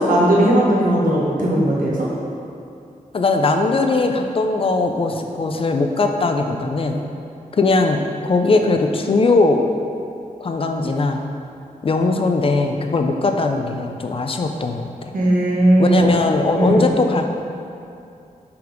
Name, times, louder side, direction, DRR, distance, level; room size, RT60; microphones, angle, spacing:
voice 1, 0.0-2.1 15.1-16.2 16.6-16.8, right 1 dB, 70° right, -5 dB, 1.4 m, -17 dB
voice 2, 3.1-7.0 7.5-9.6 10.4-11.3 11.8-15.1 15.8-17.3, left 3 dB, 40° left, 5 dB, 0.4 m, -19 dB
5.6 x 4.0 x 5.1 m, 2.6 s
wide cardioid pair, 125°, 15 cm